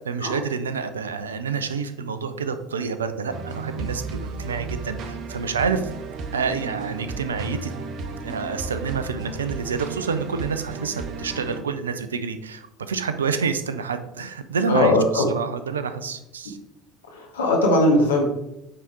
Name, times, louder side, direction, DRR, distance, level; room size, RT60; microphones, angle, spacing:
voice 1, 0.1-5.9 6.3-7.7 8.2-16.6, right 5 dB, 75° right, 10 dB, 0.6 m, -28 dB
sound 1, 3.3-11.6, right 4 dB, 50° right, 0.9 m, -34 dB
voice 2, 14.7-15.2 17.1-18.2, left 1 dB, 75° left, -1 dB, 1.5 m, -19 dB
8.9 x 4.0 x 4.6 m, 0.87 s
figure-of-eight pair, 65°, 0 cm